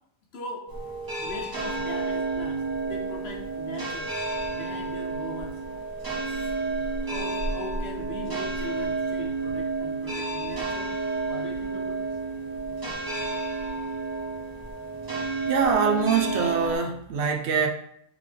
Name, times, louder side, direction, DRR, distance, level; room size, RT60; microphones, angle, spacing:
voice 1, 0.3-0.7 1.2-4.1 4.5-5.6 6.3-6.5 7.0-11.0 11.2-12.2 15.0-15.2, left 2 dB, 65° left, -1 dB, 1.1 m, -40 dB
sound 1, 0.7-16.8, right 3 dB, 25° right, 0.7 m, -30 dB
voice 2, 15.5-17.7, right 6 dB, 70° right, 3 dB, 0.8 m, -24 dB
3.7 x 3.6 x 3.3 m, 0.72 s
omnidirectional pair, 1.2 m